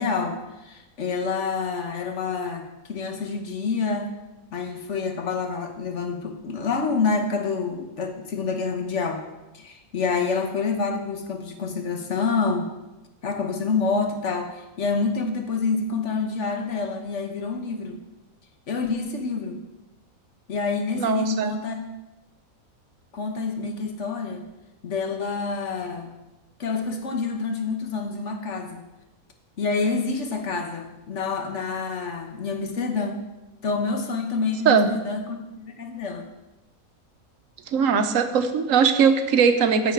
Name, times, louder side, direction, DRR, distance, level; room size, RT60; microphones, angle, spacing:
voice 1, 0.0-4.1 4.5-9.2 9.5-12.7 13.2-18.0 18.7-19.6 20.5-21.8 23.1-24.4 24.8-26.1 26.6-28.9 29.6-33.2 33.6-36.3, left 4 dB, 60° left, 5 dB, 1.3 m, -27 dB
voice 2, 20.9-21.5 34.6-34.9 37.7-39.9, right 6 dB, 70° right, 8 dB, 1.1 m, -20 dB
10.5 x 7.3 x 4.5 m, 1.0 s
omnidirectional pair, 1.5 m